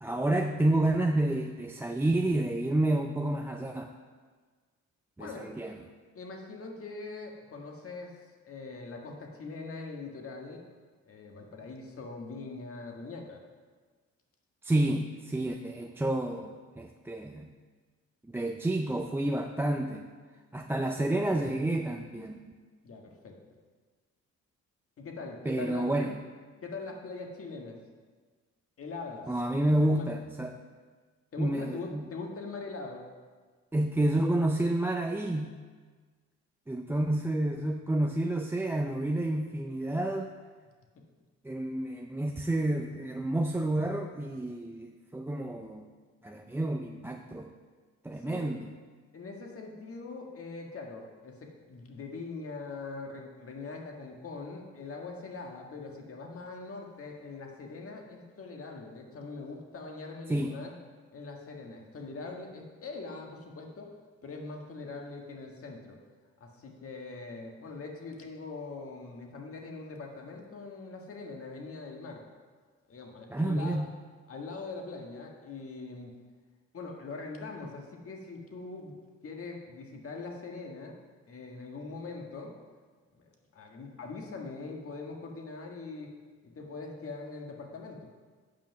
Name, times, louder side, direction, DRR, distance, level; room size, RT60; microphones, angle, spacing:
voice 1, 0.0-3.9 5.2-5.8 14.6-17.5 18.3-20.1 20.5-22.4 25.5-26.2 29.3-30.6 31.4-32.1 33.7-35.6 36.7-40.3 41.4-45.9 46.2-47.5 48.0-48.7 60.3-60.6 73.3-73.9, right 1 dB, 10° right, 3 dB, 0.4 m, -29 dB
voice 2, 5.2-5.5 6.1-8.1 8.5-10.6 11.1-13.4 22.8-23.4 25.0-26.1 26.6-27.8 28.8-29.4 29.8-30.1 31.3-33.1 48.2-48.5 49.1-60.7 61.1-63.9 64.2-66.0 66.4-72.3 72.9-73.8 74.3-76.2 76.7-81.0 81.3-82.6 83.1-86.1 86.4-88.1, left 3 dB, 50° left, 1 dB, 1.6 m, -42 dB
8.6 x 5.9 x 5.8 m, 1.5 s
cardioid pair, 90°, 30 cm